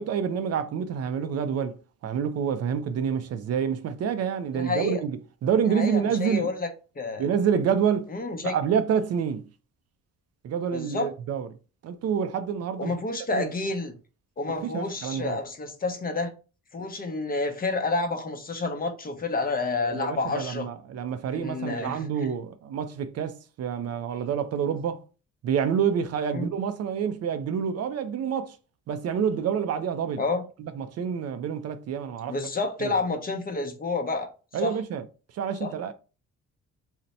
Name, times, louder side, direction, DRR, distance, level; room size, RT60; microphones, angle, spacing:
voice 1, 0.0-1.8 2.0-6.5 7.2-8.1 8.4-9.5 10.4-11.5 11.8-12.9 13.3-13.5 14.6-15.4 19.8-25.0 25.4-28.6 28.9-30.2 30.6-32.3 32.8-32.9 34.5-35.0 35.3-35.9, right 7 dB, 55° right, 0.4 m, -28 dB
voice 2, 4.5-5.0 5.7-6.7 7.0-7.3 8.1-8.6 10.7-11.1 12.8-13.9 14.4-16.3 16.7-20.7 21.3-22.3 26.3-26.5 30.2-30.4 32.3-34.3 34.5-34.8 35.6-35.7, left 3 dB, 30° left, 0.6 m, -29 dB
2.7 x 2.1 x 4.0 m
cardioid pair, 90°, 30 cm